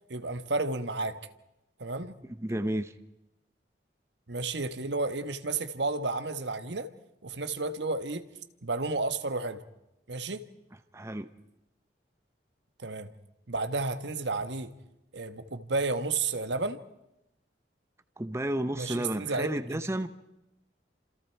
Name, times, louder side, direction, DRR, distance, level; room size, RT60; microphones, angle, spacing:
voice 1, 0.1-1.2 1.8-2.2 4.3-6.9 7.2-8.3 8.6-9.6 10.1-10.4 12.8-13.1 13.5-14.7 15.1-16.8 18.8-19.8, right 3 dB, 75° right, 1.3 m, -32 dB
voice 2, 2.2-2.9 10.9-11.3 18.2-20.1, right 1 dB, 15° right, 0.8 m, -32 dB
29.5 x 27.5 x 4.6 m
head